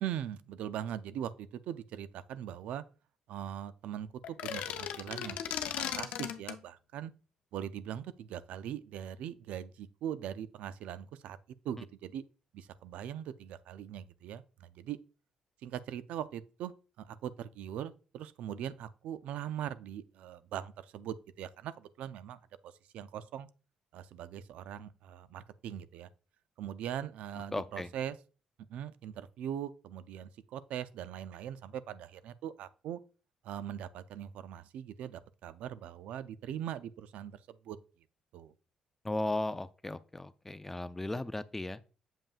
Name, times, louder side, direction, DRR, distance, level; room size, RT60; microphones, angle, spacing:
voice 1, 0.0-2.8 3.3-5.4 5.8-7.1 7.5-11.4 11.6-12.2 12.5-15.0 15.6-16.7 17.0-22.4 22.9-23.5 23.9-26.1 26.6-28.2 28.7-33.0 33.4-37.3 37.7-37.8 38.3-38.5, right 10 dB, 80° right, 0.3 m, -41 dB
sound 1, 4.2-6.6, left 9 dB, 80° left, 0.5 m, -37 dB
voice 2, 27.5-27.9 39.0-41.8, left 2 dB, 15° left, 0.3 m, -36 dB
7.2 x 5.3 x 2.4 m
cardioid pair, 90°, 2 cm